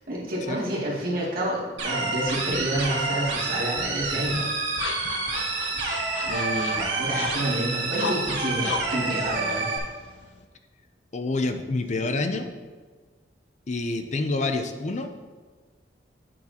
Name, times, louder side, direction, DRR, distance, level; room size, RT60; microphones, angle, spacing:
voice 1, 0.0-5.0 6.2-9.7, right 1 dB, 50° right, -6 dB, 2.5 m, -29 dB
sound 1, 1.8-9.8, right 3 dB, 80° right, 1.9 m, -28 dB
sound 2, 3.9-10.4, left 4 dB, 85° left, 0.7 m, -36 dB
voice 2, 4.1-4.4 11.1-12.5 13.7-15.1, left 2 dB, 40° left, 6 dB, 0.5 m, -27 dB
8.9 x 7.8 x 2.9 m, 1.4 s
head